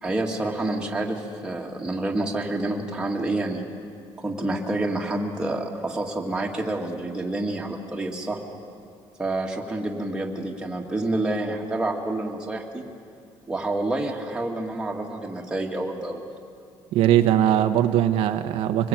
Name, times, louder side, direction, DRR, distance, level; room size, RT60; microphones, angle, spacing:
voice 1, 0.0-3.6 4.2-8.4 9.2-12.8 13.5-16.3, right 2 dB, 10° right, 0 dB, 2.1 m, -28 dB
voice 2, 16.9-18.9, right 11 dB, 80° right, 7 dB, 1.0 m, -20 dB
24.5 x 20.0 x 8.9 m, 2.3 s
cardioid pair, 165°, 9 cm